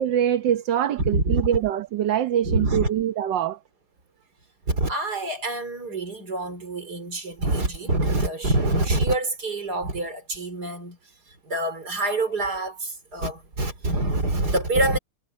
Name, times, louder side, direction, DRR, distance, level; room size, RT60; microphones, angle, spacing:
voice 1, 0.0-3.6, right 10 dB, 75° right, 1.7 m, -24 dB
voice 2, 1.0-1.4 2.4-2.9 4.7-11.0 11.5-15.0, right 2 dB, 60° right, 5.0 m, -25 dB
omnidirectional pair, 2.0 m